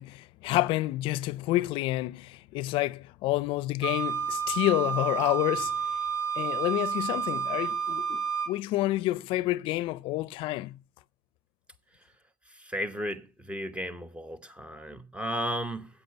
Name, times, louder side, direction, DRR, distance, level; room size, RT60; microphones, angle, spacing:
voice 1, 0.0-5.7 6.4-8.2 8.5-10.8, left 17 dB, 80° left, 0.4 m, -29 dB
Wind instrument woodwind instrument, 3.8-8.5, right 7 dB, 70° right, 2.7 m, -30 dB
voice 2, 12.6-15.9, equal, 15° right, 1.1 m, -34 dB
8.4 x 8.0 x 6.7 m
cardioid pair, 105°, 9 cm